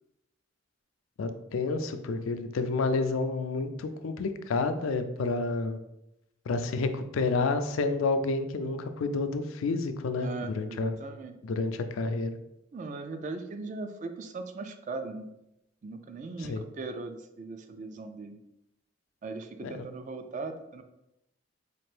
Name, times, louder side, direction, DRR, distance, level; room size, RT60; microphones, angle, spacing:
voice 1, 1.2-5.8 6.5-10.9 11.4-12.4 16.4-16.6 19.6-19.9, left 3 dB, 85° left, 9 dB, 0.4 m, -29 dB
voice 2, 10.2-11.4 12.7-15.3 15.8-18.4 19.2-20.8, right 3 dB, 40° right, 7 dB, 0.3 m, -39 dB
4.3 x 2.5 x 3.3 m, 0.86 s
head